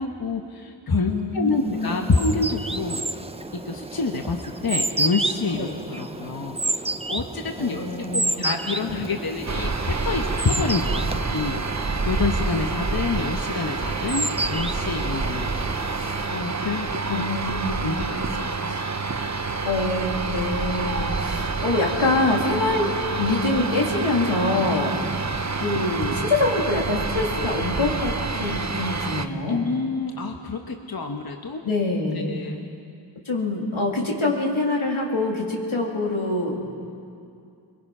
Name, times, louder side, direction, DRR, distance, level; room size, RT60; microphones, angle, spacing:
voice 1, 0.0-3.0 3.5-15.5 15.9-17.3 17.7-18.9 29.5-31.6 32.1-32.6, left 4 dB, 50° left, 4 dB, 1.1 m, -28 dB
voice 2, 1.1-2.1 5.5-5.8 7.6-8.6 17.1-18.1 19.6-24.9 25.6-29.6 31.6-32.3 33.2-36.5, left 2 dB, 85° left, -1 dB, 3.1 m, -25 dB
sound 1, 1.6-16.5, right 2 dB, 15° right, 0.6 m, -31 dB
sound 2, 9.5-29.3, right 4 dB, 35° right, 0.9 m, -28 dB
24.0 x 22.0 x 5.6 m, 2.5 s
wide cardioid pair, 70°, 47 cm